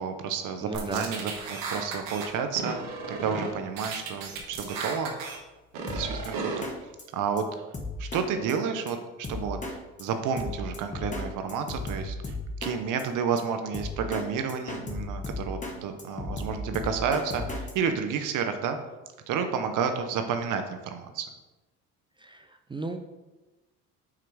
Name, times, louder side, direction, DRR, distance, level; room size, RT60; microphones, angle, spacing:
voice 1, 0.0-5.1 5.9-6.7 7.1-7.5 8.0-9.6 10.0-12.3 12.6-18.8 19.3-21.3, right 6 dB, 60° right, 7 dB, 0.8 m, -30 dB
voice 2, 0.6-1.1 22.2-22.4 22.7-23.0, right 2 dB, 15° right, 6 dB, 0.4 m, -34 dB
sound 1, 0.7-2.3 2.6-3.5 3.8-5.4 5.7-6.6, right 4 dB, 85° right, 1.4 m, -34 dB
Drum kit, 5.9-6.3 6.6-6.7 7.0-7.1 7.4-7.5 7.7-8.2 8.5-8.6 8.9-9.0 9.2-9.7 10.0-10.1 10.4-11.2 11.5-12.7 13.0-13.1 13.4-13.5 13.7-14.2 14.5-15.7 16.0-17.7, left 3 dB, 20° left, 1.1 m, -35 dB
5.8 x 4.6 x 4.8 m, 1.1 s
cardioid pair, 100°, 34 cm